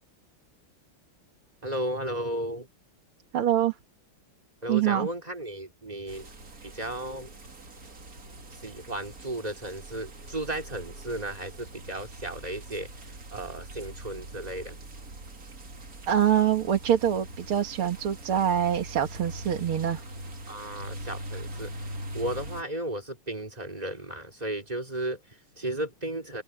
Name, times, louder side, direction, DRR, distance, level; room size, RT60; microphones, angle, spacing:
voice 1, 1.6-2.7 4.6-6.3 6.6-7.3 8.6-14.8 20.5-26.4, right 1 dB, 20° right, 3.2 m, -34 dB
voice 2, 3.3-3.8 4.7-5.1 16.1-20.0, right 10 dB, 80° right, 2.5 m, -25 dB
sound 1, 6.1-22.6, right 1 dB, 45° right, 2.9 m, -42 dB
omnidirectional pair, 2.3 m